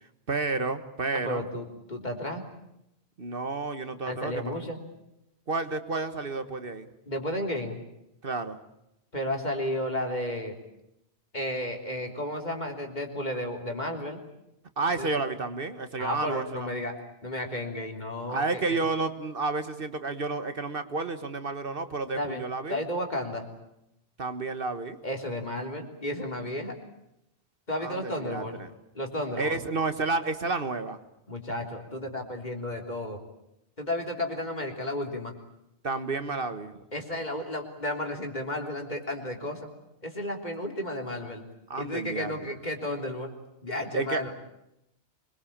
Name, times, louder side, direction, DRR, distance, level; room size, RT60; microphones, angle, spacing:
voice 1, 0.3-1.4 3.2-4.4 5.5-6.9 8.2-8.6 14.8-16.7 18.3-22.8 24.2-25.0 27.8-28.7 29.4-31.0 35.8-36.8 41.7-42.3 43.9-44.2, right 3 dB, 60° right, 10 dB, 1.6 m, -31 dB
voice 2, 1.1-2.4 4.1-4.8 7.1-7.8 9.1-10.5 11.3-14.2 15.0-15.1 16.0-17.0 17.2-18.8 22.2-22.4 22.7-23.5 25.0-26.8 27.7-28.6 28.9-29.6 31.3-33.2 33.8-35.3 36.9-39.7 40.0-41.5 41.8-43.3 43.6-44.3, left 1 dB, 45° left, 3 dB, 3.7 m, -33 dB
25.5 x 22.0 x 8.7 m, 0.84 s
omnidirectional pair, 1.1 m